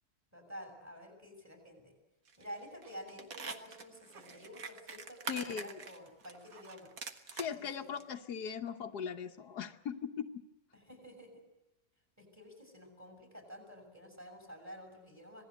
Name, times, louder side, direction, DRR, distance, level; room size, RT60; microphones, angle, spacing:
voice 1, 0.3-1.9 2.4-6.9 7.5-7.9 10.7-11.3 12.2-15.4, equal, 10° right, 4 dB, 6.7 m, -50 dB
sound 1, 2.3-2.5 2.8-7.5 8.0-8.1, right 5 dB, 60° right, 1.9 m, -45 dB
voice 2, 5.3-5.9 7.3-10.4, left 7 dB, 80° left, 5 dB, 1.6 m, -39 dB
26.5 x 18.0 x 8.0 m, 1.0 s
omnidirectional pair, 1.7 m